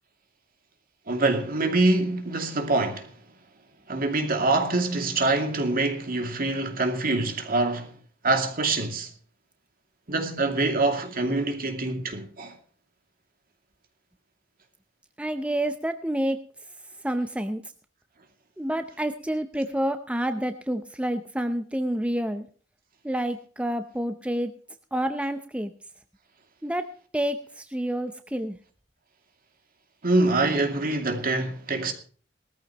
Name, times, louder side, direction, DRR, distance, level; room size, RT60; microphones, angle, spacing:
voice 1, 1.1-3.1 3.9-7.9 8.2-9.1 10.1-12.5 30.0-31.9, right 2 dB, 50° right, 2.5 m, -25 dB
voice 2, 15.2-16.4 17.0-17.6 18.6-22.5 23.0-24.5 24.9-25.7 26.6-26.8 27.1-28.6, right 1 dB, 5° right, 0.7 m, -28 dB
19.0 x 14.0 x 3.0 m
head